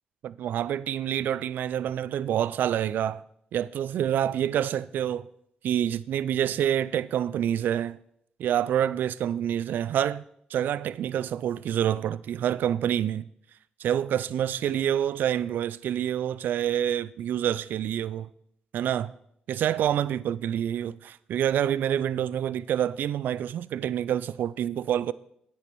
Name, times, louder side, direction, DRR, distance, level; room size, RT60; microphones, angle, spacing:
voice 1, 0.2-3.2 3.5-5.3 5.6-8.0 8.4-10.2 10.5-13.3 13.8-18.3 18.7-19.1 19.5-25.1, right 10 dB, 70° right, 0.3 m, -27 dB
9.3 x 8.9 x 4.6 m
hypercardioid pair, 50°, 3 cm